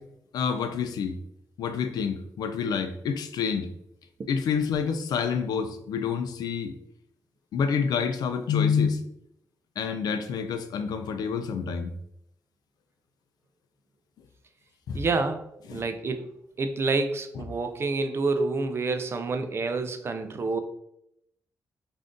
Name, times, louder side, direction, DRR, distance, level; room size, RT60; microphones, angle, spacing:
voice 1, 0.3-1.2 1.6-3.7 4.3-6.8 7.5-9.0 9.8-12.0 14.9-15.0 15.7-15.8, left 6 dB, 80° left, 8 dB, 0.4 m, -28 dB
voice 2, 14.9-15.4 15.7-16.3 16.6-20.6, right 3 dB, 40° right, 8 dB, 0.4 m, -28 dB
2.6 x 2.4 x 3.6 m, 0.76 s
cardioid pair, 105°, 7 cm